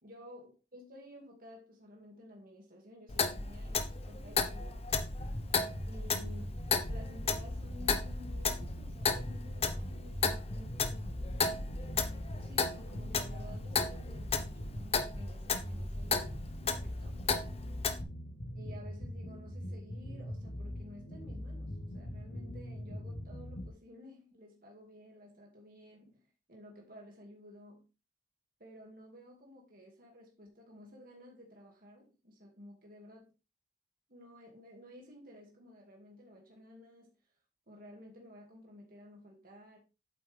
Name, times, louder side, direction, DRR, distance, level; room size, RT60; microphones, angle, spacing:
voice 1, 0.0-5.1 5.7-6.6 6.9-11.2 11.7-17.2 18.6-27.9 28.6-33.3 34.1-37.1 37.7-39.8, left 1 dB, 50° right, 2.3 m, -54 dB
Clock, 3.1-18.0, left 4 dB, 35° left, 0.9 m, -34 dB
sound 1, 4.9-23.7, equal, 75° left, 1.9 m, -42 dB
9.0 x 7.8 x 3.5 m
head